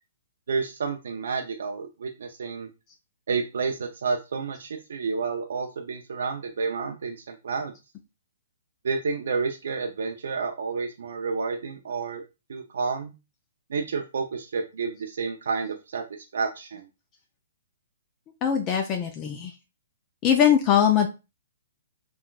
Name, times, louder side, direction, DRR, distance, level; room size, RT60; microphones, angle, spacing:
voice 1, 0.5-2.7 3.3-7.7 8.8-12.2 12.5-13.1 13.7-16.0 16.3-16.9, right 5 dB, 75° right, 4 dB, 0.4 m, -30 dB
voice 2, 18.4-19.5 20.2-21.1, left 9 dB, 25° left, 3 dB, 0.4 m, -21 dB
3.8 x 2.2 x 2.3 m, 0.27 s
hypercardioid pair, 140°, 0 cm